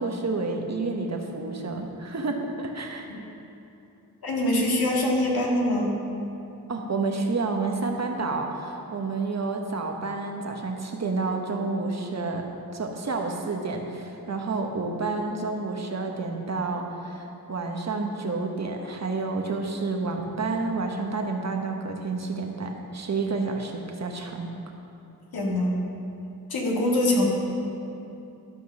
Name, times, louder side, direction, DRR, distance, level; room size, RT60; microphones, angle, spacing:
voice 1, 0.0-3.1 6.7-12.5 12.7-24.5, right 3 dB, 45° right, 2 dB, 1.2 m, -29 dB
voice 2, 4.2-6.0 25.3-25.8 26.5-27.2, left 1 dB, 70° left, -2 dB, 2.1 m, -23 dB
13.0 x 5.4 x 6.3 m, 2.8 s
cardioid pair, 80°, 38 cm